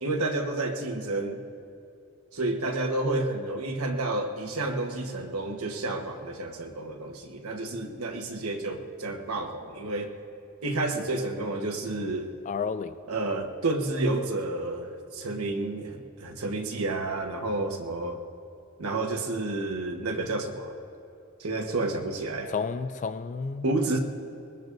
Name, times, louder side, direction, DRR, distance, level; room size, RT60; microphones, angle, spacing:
voice 1, 0.0-1.4 2.3-10.2 10.6-12.3 13.1-18.2 18.8-20.7 21.4-22.5 23.6-24.0, right 2 dB, 85° right, 1.3 m, -30 dB
voice 2, 12.5-13.0 22.5-24.0, left 5 dB, 35° left, 0.3 m, -32 dB
23.5 x 20.5 x 2.6 m
head